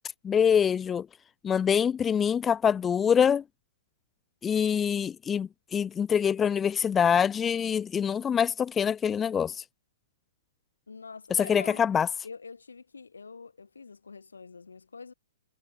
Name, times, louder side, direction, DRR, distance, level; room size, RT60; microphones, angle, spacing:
voice 1, 0.2-1.1 1.4-3.4 4.4-9.6 11.5-12.1, left 7 dB, 15° left, 0.4 m, -25 dB
voice 2, 10.9-11.8 12.2-15.1, left 4 dB, 85° left, 4.1 m, -45 dB
hypercardioid pair, 130°, 0 cm